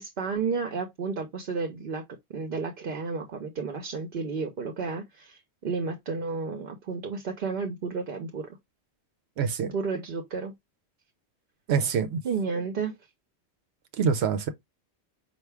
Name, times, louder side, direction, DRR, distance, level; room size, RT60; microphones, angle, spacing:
voice 1, 0.0-2.0 2.3-8.4 9.6-10.5 12.2-13.0, right 4 dB, 60° right, 0.9 m, -32 dB
voice 2, 9.4-9.7 11.7-12.2 14.0-14.5, right 6 dB, 85° right, 0.9 m, -25 dB
4.6 x 2.5 x 3.3 m
omnidirectional pair, 1.1 m